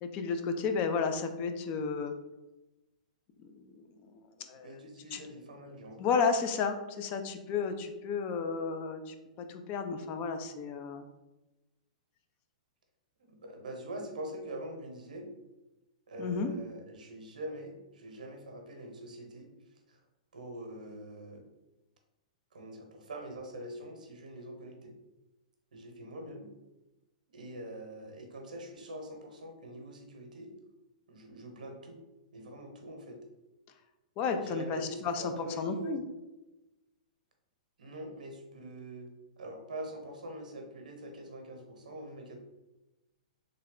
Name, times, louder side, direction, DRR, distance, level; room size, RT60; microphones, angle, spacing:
voice 1, 0.0-2.1 3.4-3.9 4.1-4.2 4.5-4.7 5.1-5.2 6.0-11.0 16.2-16.5 34.2-36.0, left 5 dB, 35° left, 7 dB, 0.4 m, -32 dB
voice 2, 4.5-6.0 13.2-15.3 16.1-19.5 19.9-20.0 20.3-21.4 22.5-24.9 25.7-26.5 27.3-30.5 31.1-32.0 32.3-33.2 34.4-36.0 37.8-39.1 39.4-42.4, right 1 dB, 85° right, 3 dB, 0.8 m, -44 dB
3.3 x 2.2 x 3.7 m, 1.0 s
hypercardioid pair, 130°, 4 cm